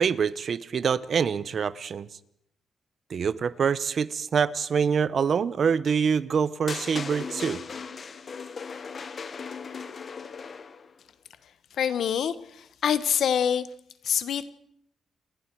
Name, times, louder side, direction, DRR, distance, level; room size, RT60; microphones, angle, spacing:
voice 1, 0.0-2.1 3.1-7.6, right 6 dB, 55° right, 16 dB, 0.9 m, -25 dB
sound 1, 6.7-10.9, left 5 dB, 45° left, 1.4 m, -37 dB
voice 2, 11.8-13.7 14.0-14.5, left 8 dB, 75° left, 14 dB, 1.1 m, -26 dB
28.5 x 21.5 x 4.7 m, 0.73 s
cardioid pair, 110°, 0 cm